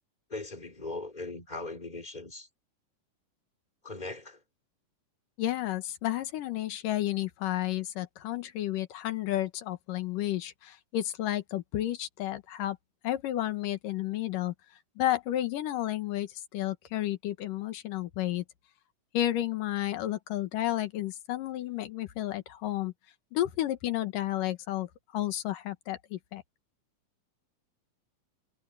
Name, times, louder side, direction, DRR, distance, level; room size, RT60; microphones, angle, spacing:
voice 1, 0.3-2.5 3.8-4.4, left 2 dB, 10° left, 4.2 m, -39 dB
voice 2, 5.4-12.8 13.0-14.5 15.0-18.4 19.1-22.9 23.3-26.4, left 13 dB, 85° left, 3.0 m, -32 dB
omnidirectional pair, 3.7 m